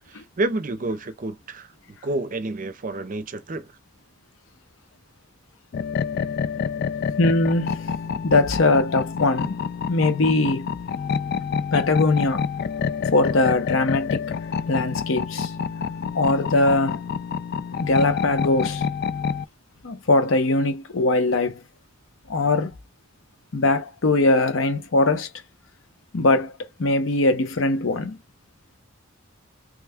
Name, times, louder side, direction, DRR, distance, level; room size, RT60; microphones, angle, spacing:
voice 1, 0.1-3.7, right 2 dB, 45° right, 0.6 m, -29 dB
sound 1, 5.7-19.4, left 6 dB, 50° left, 0.3 m, -28 dB
voice 2, 7.2-7.9 8.2-9.6 9.9-10.7 11.7-12.5 13.1-14.2 14.7-15.5 16.1-17.0 17.8-18.8 19.8-21.6 22.3-22.7 23.5-25.3 26.1-26.5 26.8-28.2, left 2 dB, 80° left, 0.8 m, -21 dB
3.1 x 2.2 x 3.5 m
head